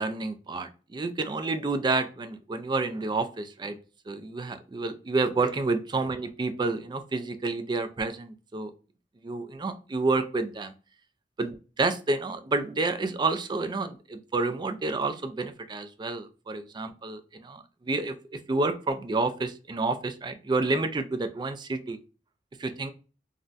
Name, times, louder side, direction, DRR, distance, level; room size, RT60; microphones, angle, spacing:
voice 1, 0.0-3.8 4.1-8.7 9.2-10.7 11.4-22.0 22.6-22.9, right 3 dB, 25° right, 9 dB, 0.3 m, -29 dB
3.7 x 2.1 x 2.4 m, 0.34 s
head